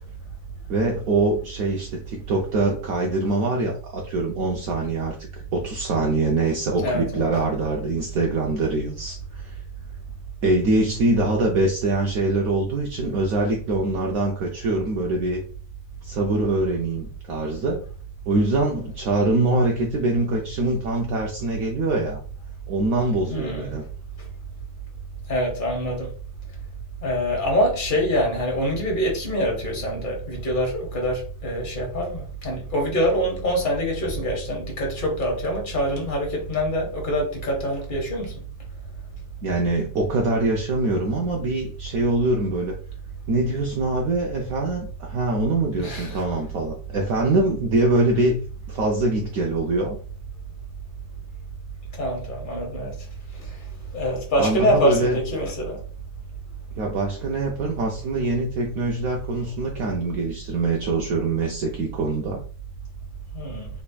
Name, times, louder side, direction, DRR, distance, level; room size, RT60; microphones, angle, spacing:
voice 1, 0.7-9.6 10.4-15.4 16.0-17.8 18.3-22.2 22.7-23.8 39.4-42.7 43.3-48.4 48.7-50.0 54.4-55.2 56.8-62.4, right 2 dB, 75° right, 0.8 m, -24 dB
voice 2, 6.8-7.3 23.3-23.7 25.3-26.1 27.0-38.3 45.8-46.1 52.0-52.9 53.4-53.5 53.9-55.8 63.3-63.7, equal, 35° left, 0.9 m, -25 dB
3.7 x 3.2 x 2.2 m
omnidirectional pair, 2.1 m